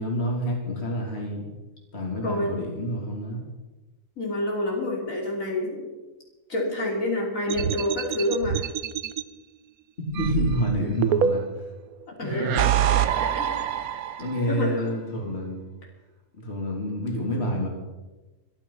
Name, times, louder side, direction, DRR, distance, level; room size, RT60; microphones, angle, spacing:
voice 1, 0.0-1.4 1.9-3.4 10.2-11.7 12.2-12.7 14.2-15.6 16.4-17.7, equal, 45° left, 0 dB, 3.5 m, -28 dB
voice 2, 2.2-2.6 4.2-5.9 6.5-8.6 12.2-12.6 13.4-13.6 14.5-14.7, left 1 dB, 65° left, -2 dB, 3.5 m, -28 dB
sound 1, 7.5-9.2 10.1-11.7 12.3-14.5, right 9 dB, 75° right, 1.2 m, -25 dB
25.0 x 9.6 x 5.8 m, 1.1 s
omnidirectional pair, 1.5 m